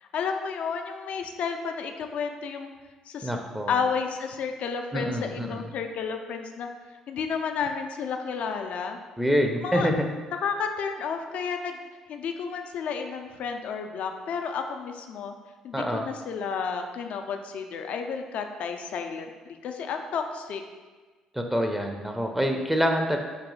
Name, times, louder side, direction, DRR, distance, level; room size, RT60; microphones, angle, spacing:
voice 1, 0.0-2.7 3.1-3.3 3.7-6.7 7.1-9.0 9.6-9.9 10.4-11.8 12.1-15.3 15.6-20.6, left 6 dB, 60° left, 5 dB, 0.4 m, -31 dB
voice 2, 3.2-3.8 4.9-5.7 9.2-10.1 15.7-16.1 21.3-23.2, equal, 5° right, 3 dB, 0.5 m, -26 dB
3.9 x 2.7 x 3.7 m, 1.4 s
hypercardioid pair, 55°, 3 cm